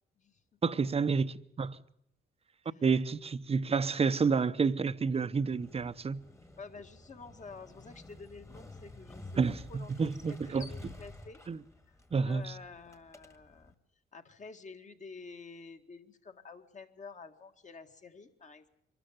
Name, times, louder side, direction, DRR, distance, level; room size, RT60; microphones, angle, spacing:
voice 1, 0.6-1.8 2.8-6.2 9.4-10.7 11.5-11.6 12.1-12.5, right 5 dB, 30° right, 0.8 m, -29 dB
Motorcycle, 5.4-13.7, left 2 dB, 15° left, 1.7 m, -51 dB
voice 2, 6.6-9.2 9.7-11.4 11.9-13.8 14.1-18.7, left 4 dB, 40° left, 1.9 m, -50 dB
23.5 x 13.0 x 9.2 m
cardioid pair, 90°, 20 cm